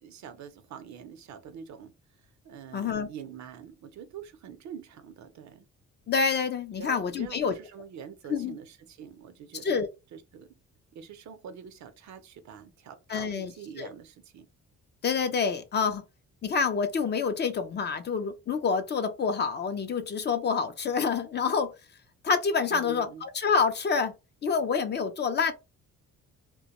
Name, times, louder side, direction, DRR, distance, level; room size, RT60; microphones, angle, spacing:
voice 1, 0.0-1.9 2.2-5.7 6.8-9.8 10.1-10.5 10.9-14.5 22.7-23.2, right 7 dB, 65° right, 0.6 m, -45 dB
voice 2, 2.7-3.1 6.1-7.5 8.3-8.6 9.6-9.9 13.1-13.5 13.8-13.9 15.0-16.0 16.4-21.7 22.2-24.1 24.4-25.5, left 5 dB, 35° left, 0.4 m, -27 dB
2.2 x 2.2 x 2.8 m
cardioid pair, 90°, 30 cm